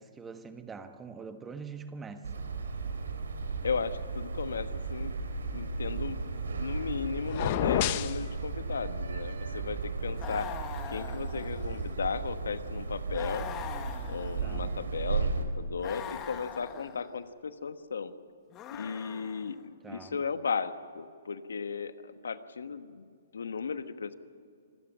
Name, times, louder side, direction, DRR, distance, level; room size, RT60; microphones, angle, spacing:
voice 1, 0.0-2.5 14.4-14.8 19.8-20.2, right 5 dB, 15° right, 8 dB, 1.3 m, -44 dB
sound 1, 2.2-15.4, right 4 dB, 80° right, 3.4 m, -35 dB
voice 2, 3.6-5.1 5.4-6.2 6.6-10.5 10.9-13.5 14.1-18.1 18.7-24.1, left 5 dB, 80° left, 11 dB, 1.2 m, -35 dB
sound 2, 7.3-8.2, left 13 dB, 40° left, 0.9 m, -28 dB
sound 3, 10.2-11.9 13.1-14.7 15.8-17.2 18.5-19.6, left 9 dB, 25° left, 1.6 m, -42 dB
26.5 x 14.0 x 8.8 m, 2.3 s
hypercardioid pair, 140°, 0 cm